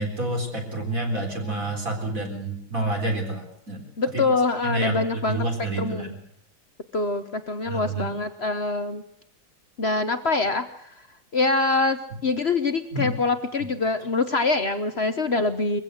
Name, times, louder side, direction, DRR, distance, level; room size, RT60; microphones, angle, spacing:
voice 1, 0.0-4.2 4.6-6.2 7.7-8.1 12.9-13.1 13.6-13.7, right 2 dB, 40° right, 2 dB, 4.3 m, -29 dB
voice 2, 4.0-5.4 5.8-6.1 6.9-9.0 9.8-10.9 11.3-15.8, left 3 dB, 45° left, 9 dB, 0.9 m, -24 dB
22.5 x 15.5 x 7.8 m, 0.71 s
omnidirectional pair, 2.3 m